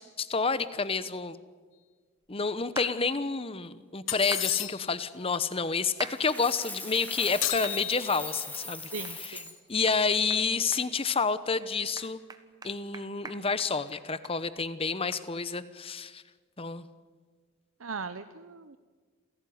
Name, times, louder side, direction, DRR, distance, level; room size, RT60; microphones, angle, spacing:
voice 1, 0.0-1.4 2.3-9.4 9.7-12.2 12.6-16.2 16.6-16.9, left 4 dB, 25° left, 14 dB, 0.9 m, -29 dB
sound 1, 2.8-2.9 4.3-4.5 6.0-6.2 6.7-6.8 7.6-7.8 8.3-8.4 9.0-9.2 9.5-9.6 9.9-10.0 10.3-10.4 10.7-11.2 11.5-11.6 12.0-14.3 14.6-14.7 15.1-15.2, right 3 dB, 20° right, 1.4 m, -41 dB
sound 2, 4.1-5.0 7.4-8.5, left 14 dB, 60° left, 1.3 m, -33 dB
Coin (dropping), 6.0-9.5, left 2 dB, 10° left, 3.0 m, -40 dB
voice 2, 8.9-9.5 17.8-18.8, right 4 dB, 70° right, 11 dB, 0.8 m, -39 dB
28.0 x 16.5 x 9.5 m, 1.5 s
head